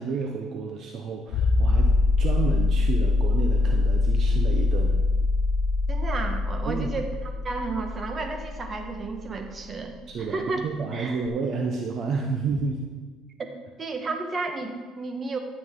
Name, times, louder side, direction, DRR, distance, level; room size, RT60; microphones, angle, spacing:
voice 1, 0.0-1.9 2.2-5.0 6.7-7.0 10.1-12.9, right 4 dB, 50° right, 2 dB, 0.9 m, -30 dB
sound 1, 1.3-9.7 11.3-11.4, left 3 dB, 65° left, 0.7 m, -23 dB
voice 2, 5.9-10.0 10.3-10.7 10.9-11.2 13.4-13.5 13.8-15.4, right 3 dB, 30° right, 4 dB, 1.4 m, -32 dB
12.5 x 8.7 x 3.8 m, 1.3 s
cardioid pair, 105°, 0 cm